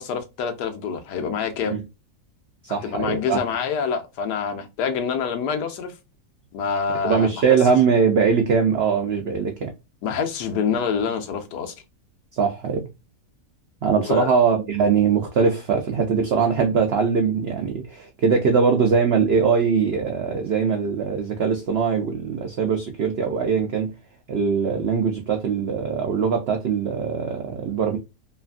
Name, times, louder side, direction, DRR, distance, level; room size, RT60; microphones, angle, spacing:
voice 1, 0.0-1.8 2.8-5.9 6.5-7.4 10.0-11.7 14.0-14.3, left 6 dB, 85° left, 1.3 m, -26 dB
voice 2, 2.6-3.4 7.0-9.7 12.3-12.9 13.8-23.9 24.3-28.0, right 6 dB, 85° right, 0.5 m, -21 dB
3.2 x 2.4 x 2.2 m
omnidirectional pair, 1.7 m